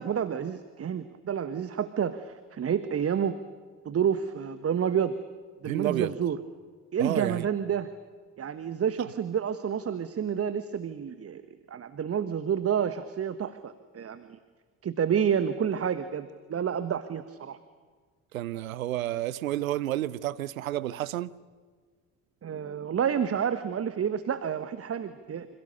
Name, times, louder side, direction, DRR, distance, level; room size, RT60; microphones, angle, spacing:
voice 1, 0.0-3.4 3.8-5.1 5.6-6.4 6.9-7.9 8.4-11.4 11.7-14.4 14.8-17.6 22.4-25.5, right 8 dB, 35° right, 1.4 m, -29 dB
voice 2, 5.6-6.1 7.0-7.4 18.3-21.3, right 14 dB, 75° right, 0.8 m, -30 dB
28.0 x 27.0 x 6.8 m
figure-of-eight pair, 45°, 42 cm